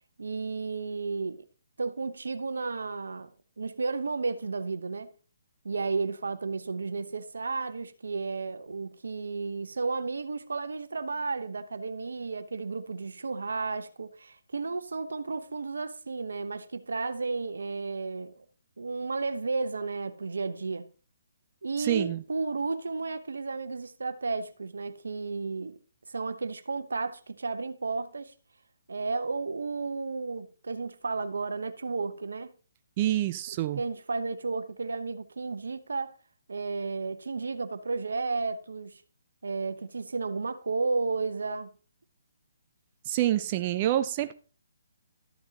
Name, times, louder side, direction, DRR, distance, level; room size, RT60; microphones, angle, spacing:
voice 1, 0.2-1.4 1.8-3.3 3.6-5.1 5.6-18.3 18.8-20.9 21.6-25.8 26.1-28.3 28.9-32.5 33.5-36.1 36.5-39.0 39.4-41.7, right 4 dB, 80° right, 0.9 m, -33 dB
voice 2, 21.8-22.2 33.0-33.8 43.1-44.3, right 13 dB, 35° right, 0.4 m, -27 dB
13.0 x 8.1 x 2.9 m
hypercardioid pair, 145°, 0 cm